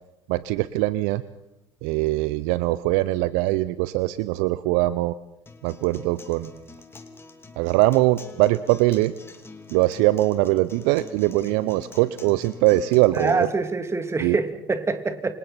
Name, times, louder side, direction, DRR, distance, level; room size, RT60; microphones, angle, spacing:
voice 1, 0.3-1.2 1.8-5.2 5.6-6.5 7.6-9.1 9.7-13.5 14.2-14.4, right 17 dB, 60° right, 17 dB, 0.7 m, -22 dB
Acoustic guitar, 5.5-13.4, left 3 dB, 15° left, 2.9 m, -45 dB
voice 2, 13.1-15.3, right 3 dB, 20° right, 8 dB, 2.7 m, -25 dB
28.5 x 26.0 x 4.4 m, 0.91 s
figure-of-eight pair, 70°, 14 cm